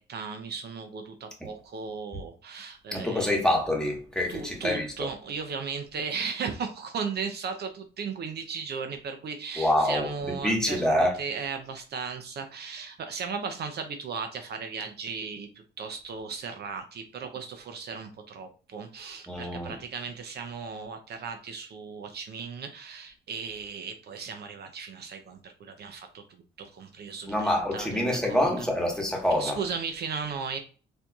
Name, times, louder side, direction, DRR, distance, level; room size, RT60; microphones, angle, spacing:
voice 1, 0.0-3.4 4.3-15.5 15.8-26.2 26.6-28.7 29.4-30.6, right 5 dB, 55° right, 0.5 m, -36 dB
voice 2, 2.9-4.9 9.6-10.1 10.4-11.2 19.3-19.8 27.3-29.6, left 1 dB, 5° left, 1.2 m, -26 dB
4.3 x 2.6 x 2.3 m
cardioid pair, 90°, 20 cm